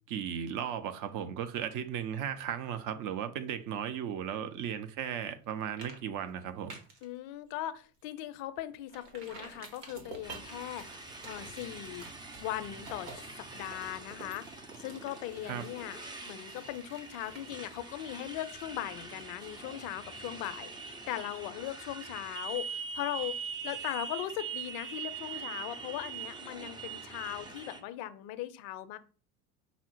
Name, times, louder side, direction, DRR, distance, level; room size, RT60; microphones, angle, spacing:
voice 1, 0.1-6.8 15.5-15.6, right 9 dB, 45° right, 0.7 m, -36 dB
sound 1, 5.2-5.5 5.8-6.0 6.3-7.1 7.5-7.6 8.0-8.1 8.9-22.5 22.8-22.9, right 3 dB, 75° right, 1.4 m, -51 dB
voice 2, 7.0-12.1 12.4-29.0, left 13 dB, 50° left, 0.6 m, -39 dB
Motorcycle, 10.2-27.8, right 5 dB, 10° right, 0.4 m, -43 dB
5.6 x 2.0 x 4.5 m
hypercardioid pair, 75°, 46 cm